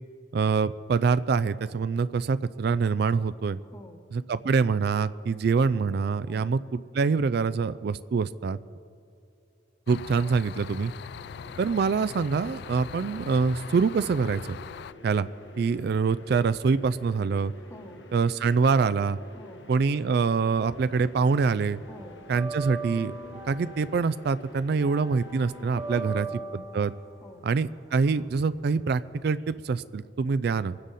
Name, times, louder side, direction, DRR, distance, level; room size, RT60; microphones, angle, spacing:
voice 1, 0.3-3.6 4.1-8.6 9.9-10.9 11.6-14.4 15.0-15.3 15.6-17.5 18.1-19.2 19.7-21.8 22.3-23.2 23.5-26.3 26.5-26.9 27.4-30.8, right 5 dB, 60° right, 15 dB, 0.4 m, -25 dB
voice 2, 3.6-4.0 6.3-6.6 17.6-18.1 19.3-19.7 21.9-22.3 25.9-26.4 27.2-27.5, left 1 dB, 15° left, 6 dB, 1.0 m, -47 dB
sound 1, 9.9-14.9, left 7 dB, 65° left, 0.3 m, -41 dB
sound 2, 11.2-26.2, left 1 dB, 85° left, 1.5 m, -49 dB
sound 3, 20.0-21.1 21.4-29.3, right 3 dB, 20° right, 0.9 m, -40 dB
24.0 x 9.9 x 4.1 m, 2.7 s
head